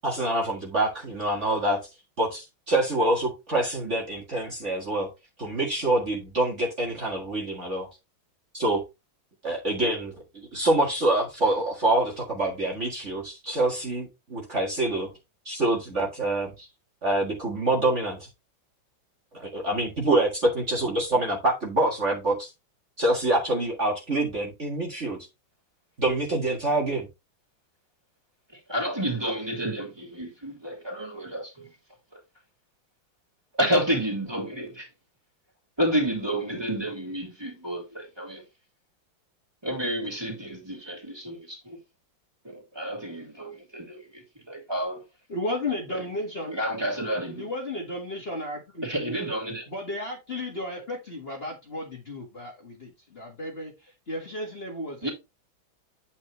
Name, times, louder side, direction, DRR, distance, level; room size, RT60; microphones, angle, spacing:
voice 1, 0.0-1.8 2.2-5.1 5.4-7.9 8.5-8.8 9.4-15.1 15.5-16.7 17.0-18.3 19.3-22.5 23.0-25.2 26.0-27.1, right 1 dB, 35° right, 2.0 m, -26 dB
voice 2, 28.5-31.7 32.1-32.2 33.6-34.9 35.8-38.4 39.6-41.8 42.4-45.0 45.9-46.0 46.5-47.5 48.8-49.7 55.0-55.1, equal, 10° right, 3.0 m, -30 dB
voice 3, 45.3-46.6 47.4-49.2 49.7-55.1, left 1 dB, 30° left, 1.8 m, -34 dB
8.8 x 5.4 x 3.1 m
omnidirectional pair, 2.2 m